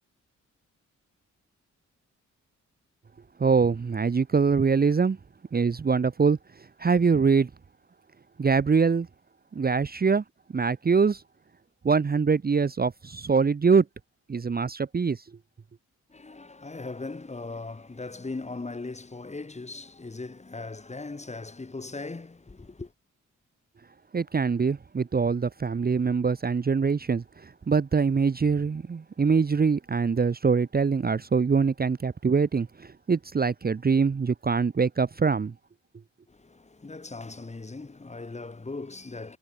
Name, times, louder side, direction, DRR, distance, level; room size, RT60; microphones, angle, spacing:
voice 1, 3.4-5.2 5.5-7.5 8.4-9.1 9.5-10.2 10.5-11.2 11.8-13.9 14.3-15.2 24.1-35.5, right 5 dB, 30° right, 0.9 m, -24 dB
voice 2, 16.1-22.9 36.3-39.4, left 3 dB, 20° left, 2.0 m, -39 dB
cardioid pair, 95°, 30 cm